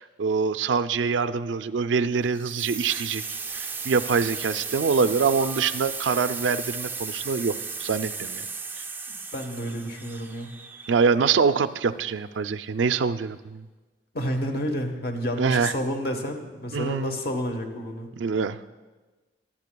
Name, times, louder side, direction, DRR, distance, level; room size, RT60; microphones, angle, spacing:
voice 1, 0.0-3.2 3.5-8.4 8.8-8.9 10.9-13.7 15.4-15.7 16.7-17.2 18.2-18.6, right 5 dB, 85° right, 12 dB, 0.4 m, -25 dB
sound 1, 2.4-11.2, right 5 dB, 10° right, 0.3 m, -35 dB
voice 2, 9.1-10.5 14.1-18.1, equal, 55° left, 4 dB, 1.1 m, -30 dB
24.0 x 8.7 x 2.3 m, 1.3 s
head